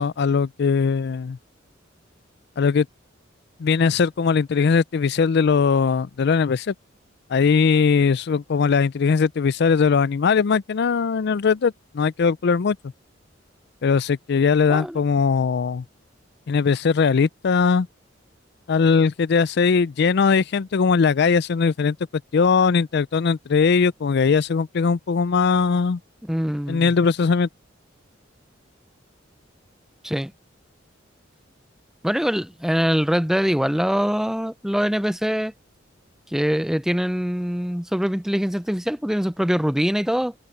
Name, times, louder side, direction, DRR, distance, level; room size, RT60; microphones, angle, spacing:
voice 1, 0.0-1.4 2.6-2.9 3.6-6.7 7.3-12.8 13.8-15.8 16.5-17.9 18.7-22.0 22.3-26.0 26.7-27.5, left 5 dB, 55° left, 0.4 m, -20 dB
voice 2, 26.3-26.9 30.0-30.3 32.0-35.5 36.3-40.3, equal, ahead, 0.5 m, -23 dB
head